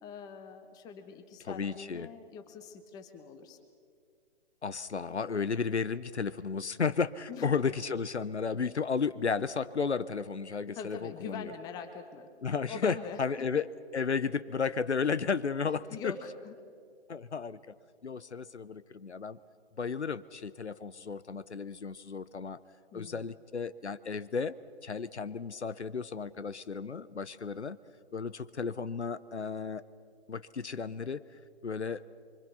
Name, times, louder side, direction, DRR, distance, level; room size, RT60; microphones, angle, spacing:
voice 1, 0.0-3.6 7.3-7.5 10.8-12.3 12.7-13.5 15.9-16.5 22.9-23.3, left 6 dB, 10° left, 7 dB, 1.0 m, -43 dB
voice 2, 1.5-2.1 4.6-11.5 12.4-16.1 17.1-17.8 18.0-19.4 19.8-22.6 22.9-27.8 28.1-29.8 30.3-31.2 31.6-32.0, left 5 dB, 80° left, 16 dB, 0.8 m, -33 dB
25.0 x 24.5 x 5.6 m, 2.2 s
figure-of-eight pair, 135°, 33 cm